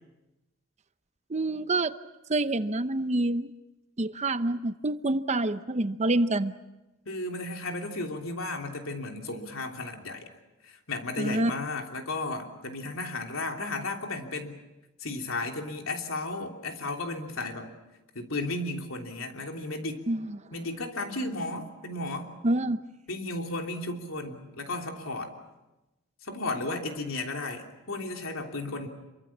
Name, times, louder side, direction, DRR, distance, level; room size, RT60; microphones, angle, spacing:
voice 1, 1.3-1.9 2.3-3.5 4.0-6.5 11.2-11.5 20.1-20.4 22.4-22.8, right 2 dB, 35° right, 12 dB, 0.8 m, -27 dB
voice 2, 7.0-10.3 10.6-14.6 15.0-17.7 18.1-20.0 20.5-22.3 23.1-25.3 26.2-28.9, left 2 dB, 75° left, 3 dB, 3.2 m, -34 dB
27.0 x 23.5 x 7.4 m, 1.0 s
head